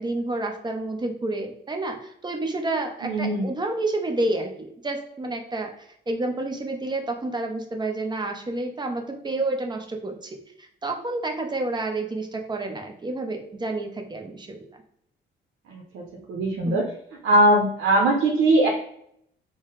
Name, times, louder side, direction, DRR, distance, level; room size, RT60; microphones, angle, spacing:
voice 1, 0.0-14.6 16.6-16.8, right 2 dB, 20° right, 3 dB, 0.7 m, -29 dB
voice 2, 3.0-3.5 15.7-16.9 17.2-18.7, right 1 dB, 80° right, 0 dB, 0.7 m, -21 dB
3.7 x 2.1 x 3.9 m, 0.69 s
cardioid pair, 90°, 20 cm